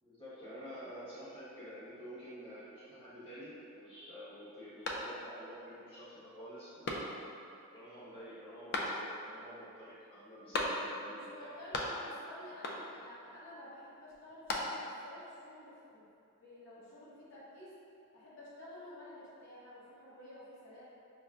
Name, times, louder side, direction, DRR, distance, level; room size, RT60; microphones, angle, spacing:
voice 1, 0.0-7.2 7.7-11.5, equal, 25° left, -12 dB, 1.1 m, -49 dB
sound 1, 4.8-5.5 5.9-6.0 6.8-7.5 8.7-9.4 10.5-11.1 11.4-12.2 12.6-13.1 14.1-15.1, left 2 dB, 50° left, 0.3 m, -38 dB
voice 2, 11.0-16.0 16.4-17.7 18.1-20.8, left 1 dB, 65° left, -10 dB, 0.9 m, -51 dB
5.7 x 2.0 x 2.4 m, 2.6 s
head